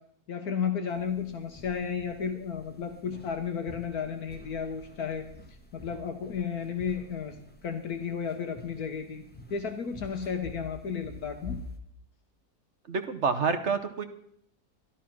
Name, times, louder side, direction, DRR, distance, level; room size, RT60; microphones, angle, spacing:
voice 1, 0.3-5.2 5.7-7.4 7.6-9.2 9.5-11.6, left 6 dB, 65° left, 6 dB, 1.6 m, -33 dB
sound 1, 0.9-11.8, left 2 dB, 5° left, 1.2 m, -48 dB
voice 2, 12.9-14.0, right 5 dB, 50° right, 8 dB, 1.2 m, -28 dB
13.0 x 12.0 x 6.0 m, 0.68 s
omnidirectional pair, 1.7 m